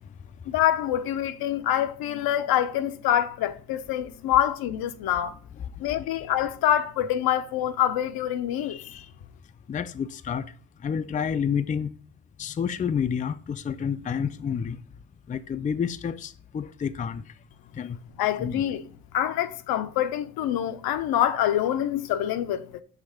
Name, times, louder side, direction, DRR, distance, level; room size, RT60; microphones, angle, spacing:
voice 1, 0.5-5.4 5.8-8.8 18.2-18.8 19.1-22.8, left 11 dB, 75° left, 0.6 m, -25 dB
voice 2, 8.6-9.1 9.7-10.5 10.8-11.9 12.4-14.8 15.3-17.2 17.7-18.0 18.4-18.6, left 7 dB, 20° left, 0.4 m, -29 dB
5.8 x 3.5 x 4.8 m
supercardioid pair, 65°, 36 cm